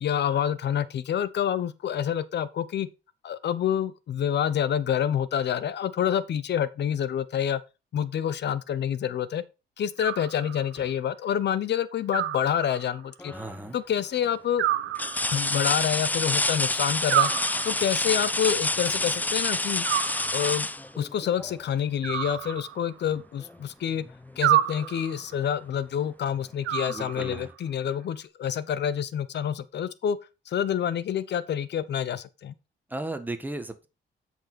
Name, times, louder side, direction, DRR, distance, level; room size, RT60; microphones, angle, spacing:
voice 1, 0.0-2.9 3.2-7.6 7.9-9.4 9.8-13.3 13.7-14.6 15.3-17.3 17.6-19.9 20.3-20.7 21.0-24.0 24.4-30.2 30.5-32.5, left 9 dB, 60° left, 0.9 m, -27 dB
Animal, 10.0-10.9 12.1-13.1 14.6-15.7 17.1-18.1 19.8-20.7 22.0-23.1 24.4-25.3 26.6-27.5, right 13 dB, 85° right, 0.8 m, -29 dB
sound 1, 13.2-13.7 14.2-14.3 14.9-21.6 23.4-23.5 24.0-25.0 26.4-26.5, left 2 dB, 10° left, 0.3 m, -28 dB
voice 2, 13.3-13.8 26.9-27.5 32.9-33.9, right 2 dB, 10° right, 1.5 m, -35 dB
8.0 x 6.6 x 4.3 m
cardioid pair, 90°, 20 cm